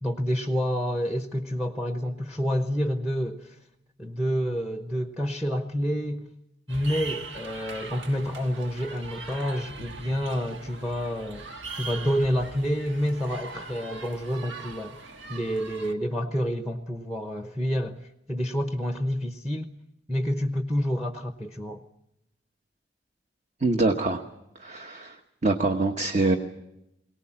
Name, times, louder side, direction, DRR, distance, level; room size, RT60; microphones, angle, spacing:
voice 1, 0.0-3.6 4.0-6.3 6.7-19.7 20.1-21.8, equal, 5° right, 7 dB, 0.9 m, -28 dB
sound 1, 6.7-15.9, right 3 dB, 75° right, 1.6 m, -41 dB
voice 2, 23.6-24.2 24.6-25.2 25.4-26.4, right 2 dB, 40° right, 5 dB, 1.1 m, -24 dB
23.0 x 18.5 x 8.6 m, 0.86 s
head